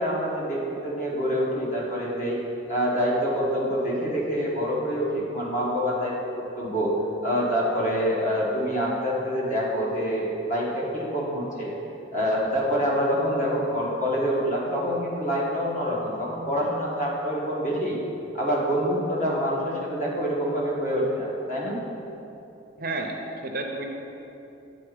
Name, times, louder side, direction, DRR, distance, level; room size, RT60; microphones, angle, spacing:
voice 1, 0.0-2.4 2.7-6.1 6.6-6.9 7.2-11.7 12.1-18.0 18.3-21.8, equal, 40° left, -5 dB, 1.4 m, -26 dB
voice 2, 22.8-23.8, right 2 dB, 45° right, 2 dB, 0.6 m, -31 dB
8.6 x 4.0 x 5.0 m, 2.9 s
head